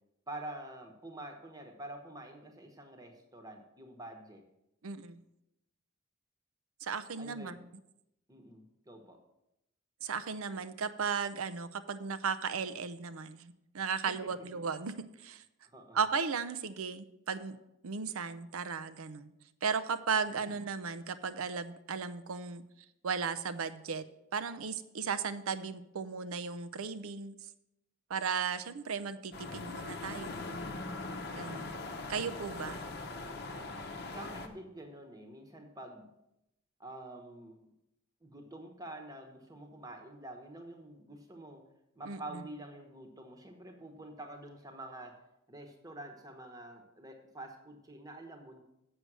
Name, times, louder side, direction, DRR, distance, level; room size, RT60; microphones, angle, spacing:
voice 1, 0.3-4.4 7.2-7.6 8.3-9.2 14.0-14.7 15.6-16.0 34.1-36.1 36.8-37.7 38.2-41.7 41.9-45.2 45.5-48.6, right 1 dB, 15° right, 4 dB, 1.1 m, -47 dB
voice 2, 4.8-5.2 6.8-7.7 10.0-15.4 15.9-17.6 17.8-19.3 19.6-22.6 23.0-24.0 24.3-27.5 28.1-30.4 31.3-31.8 32.1-32.8 42.0-42.4, right 5 dB, 75° right, 13 dB, 0.6 m, -36 dB
sound 1, 29.3-34.5, left 2 dB, 45° left, 0.8 m, -41 dB
7.9 x 6.6 x 6.1 m, 0.86 s
head